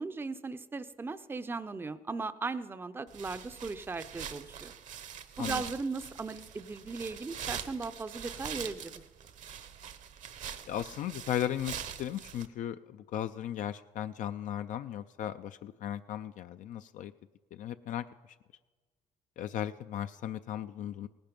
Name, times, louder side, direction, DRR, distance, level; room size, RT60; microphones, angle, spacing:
voice 1, 0.0-4.7 5.4-9.0, right 4 dB, 15° right, 12 dB, 0.5 m, -37 dB
sound 1, 3.1-12.5, right 8 dB, 60° right, 0.9 m, -43 dB
voice 2, 10.7-17.1 17.5-18.1 19.4-21.1, left 11 dB, 60° left, 10 dB, 0.4 m, -36 dB
18.0 x 10.5 x 5.2 m, 1.4 s
cardioid pair, 110°, 15 cm